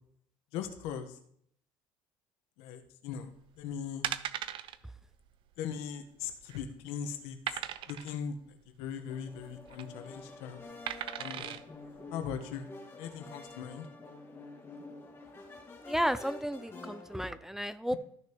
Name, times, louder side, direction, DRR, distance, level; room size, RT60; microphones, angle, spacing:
voice 1, 0.5-1.2 2.6-3.3 3.6-4.0 5.6-7.6 7.9-10.6 11.2-11.6 12.1-12.7 13.0-13.9, left 7 dB, 85° left, 7 dB, 1.2 m, -39 dB
sound 1, 3.4-3.6 4.0-4.8 5.1-5.3 5.5-5.6 6.2-6.7 7.5-8.1 9.5-9.8 10.9-11.6 12.2-12.3, right 11 dB, 60° right, 0.5 m, -37 dB
sound 2, 9.1-17.4, left 2 dB, 25° left, 1.8 m, -49 dB
voice 2, 15.8-17.9, equal, 5° right, 13 dB, 0.4 m, -33 dB
13.5 x 6.2 x 3.0 m, 0.67 s
cardioid pair, 115°, 10 cm